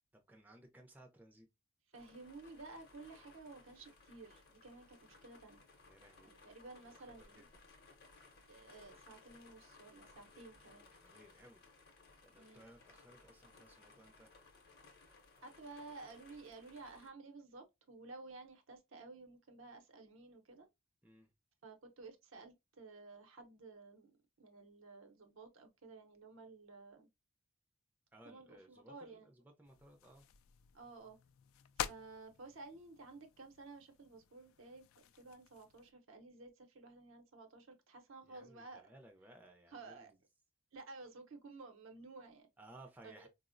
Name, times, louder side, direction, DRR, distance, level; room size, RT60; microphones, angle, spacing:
voice 1, 0.1-1.5 5.9-6.4 6.8-7.4 10.5-11.7 12.2-14.3 21.0-21.3 28.1-30.3 38.2-40.2 42.6-43.3, right 1 dB, 10° right, 0.4 m, -60 dB
sound 1, 1.9-17.1, left 3 dB, 50° left, 0.7 m, -62 dB
voice 2, 1.9-5.6 6.2-7.4 8.5-10.9 12.3-12.7 15.4-20.7 21.6-24.1 24.4-27.1 28.2-29.3 30.7-31.2 31.8-34.9 35.2-38.8 39.7-40.1 40.7-42.5 43.0-43.3, right 3 dB, 70° right, 0.7 m, -54 dB
sound 2, 29.6-35.9, left 9 dB, 80° left, 0.3 m, -49 dB
4.2 x 2.0 x 2.4 m
head